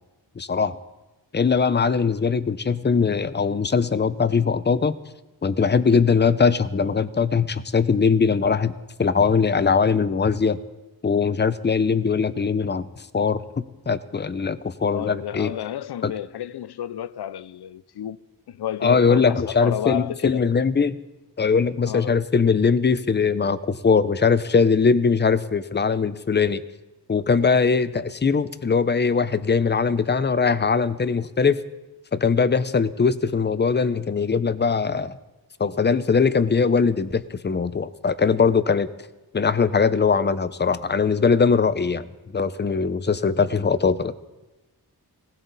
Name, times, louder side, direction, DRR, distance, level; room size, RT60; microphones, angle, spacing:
voice 1, 0.4-0.8 1.3-5.0 5.4-8.7 9.0-10.6 11.0-12.9 13.1-15.5 16.0-16.1 18.8-21.0 21.4-26.6 27.1-31.6 32.1-35.2 35.6-38.9 39.3-42.1 42.3-44.1, left 5 dB, 25° left, 0.6 m, -21 dB
voice 2, 14.8-18.2 18.5-20.5 21.8-22.2, left 11 dB, 75° left, 0.6 m, -31 dB
20.0 x 18.0 x 4.1 m
wide cardioid pair, 145°, 39 cm